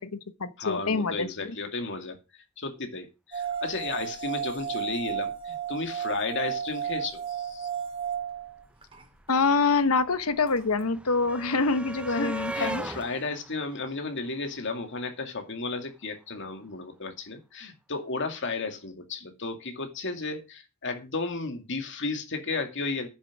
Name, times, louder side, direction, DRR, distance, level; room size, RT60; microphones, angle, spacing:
voice 1, 0.0-1.5 9.3-12.9, left 4 dB, 80° left, 1.0 m, -26 dB
voice 2, 0.6-2.2 2.6-7.7 12.1-23.1, left 3 dB, 60° left, 2.3 m, -33 dB
sound 1, 3.3-9.4 10.5-10.6, right 8 dB, 25° right, 2.3 m, -33 dB
sound 2, 8.5-8.6 8.7-14.9 16.1-16.2 16.5-16.6, right 1 dB, 5° right, 0.6 m, -40 dB
10.0 x 7.5 x 6.1 m
head